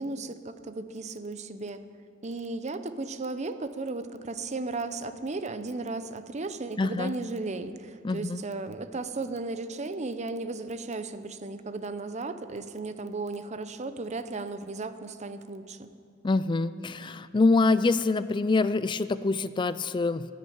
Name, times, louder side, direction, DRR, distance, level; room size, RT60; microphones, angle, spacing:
voice 1, 0.0-1.8 2.2-15.9, right 3 dB, 35° right, 10 dB, 0.7 m, -35 dB
voice 2, 6.8-7.2 8.0-8.4 16.2-20.3, left 3 dB, 25° left, 14 dB, 0.3 m, -25 dB
12.0 x 10.0 x 8.7 m, 2.3 s
head